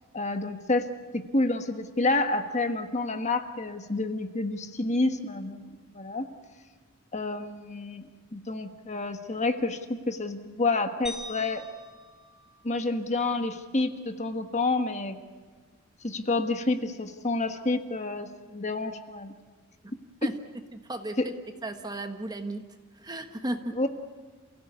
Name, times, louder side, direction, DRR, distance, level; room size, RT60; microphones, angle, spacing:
voice 1, 0.1-0.9 1.1-6.3 7.1-8.0 8.3-11.7 12.6-15.2 16.0-19.3 20.2-20.3 21.2-21.3 23.7-23.9, left 2 dB, 35° left, 7 dB, 1.4 m, -29 dB
sound 1, 11.1-13.4, equal, ahead, 3.4 m, -44 dB
voice 2, 20.7-21.3 21.6-22.7 22.9-23.8, right 1 dB, 20° right, 6 dB, 1.3 m, -35 dB
29.0 x 16.5 x 8.3 m, 1.5 s
head